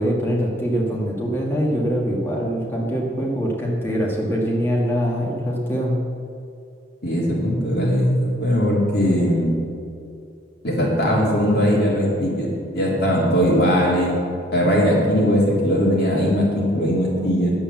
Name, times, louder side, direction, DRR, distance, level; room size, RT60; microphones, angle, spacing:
voice 1, 0.0-6.0, equal, 15° left, -3 dB, 1.7 m, -23 dB
voice 2, 7.0-9.6 10.6-14.1 14.5-17.5, equal, 60° left, -4 dB, 3.2 m, -19 dB
9.9 x 7.9 x 7.4 m, 2.4 s
head